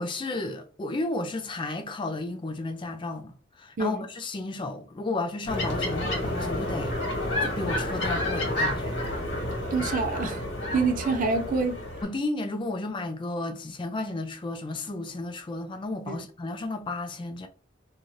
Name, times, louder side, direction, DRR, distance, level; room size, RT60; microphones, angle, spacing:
voice 1, 0.0-6.9 7.4-9.0 12.0-17.5, left 2 dB, 25° left, 0.4 m, -33 dB
sound 1, 5.5-12.0, left 1 dB, 80° left, 1.4 m, -30 dB
voice 2, 9.7-10.4 10.7-11.8 16.1-16.2, right 4 dB, 45° right, 0.4 m, -26 dB
2.7 x 2.4 x 3.0 m
head